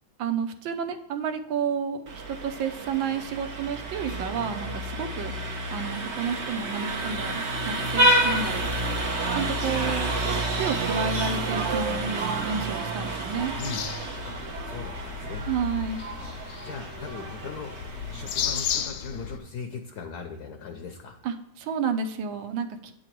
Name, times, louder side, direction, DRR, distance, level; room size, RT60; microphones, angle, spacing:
voice 1, 0.2-5.3 5.7-8.7 9.3-10.1 10.6-13.5 15.5-16.0 21.2-22.9, right 6 dB, 70° right, 8 dB, 1.4 m, -31 dB
Vehicle horn car horn honking, 2.1-18.9, right 2 dB, 50° right, 0.8 m, -29 dB
sound 1, 13.3-19.4, left 9 dB, 80° left, 1.5 m, -34 dB
voice 2, 14.6-15.4 16.6-17.8 18.1-21.2, left 5 dB, 60° left, 4 dB, 1.1 m, -38 dB
9.3 x 4.0 x 4.4 m, 0.91 s
omnidirectional pair, 2.4 m